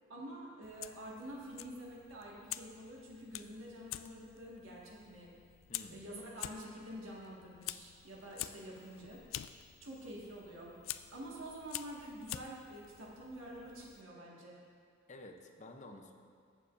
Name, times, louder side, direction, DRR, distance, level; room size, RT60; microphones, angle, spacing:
voice 1, 0.1-5.3 5.9-9.2 9.8-10.8 11.1-14.6, right 1 dB, 90° right, -4 dB, 1.7 m, -48 dB
Fire, 0.6-14.0, left 13 dB, 75° left, 0.3 m, -48 dB
voice 2, 5.7-6.1 15.1-16.1, left 2 dB, 35° left, 4 dB, 0.6 m, -51 dB
15.5 x 6.9 x 2.5 m, 2.1 s
head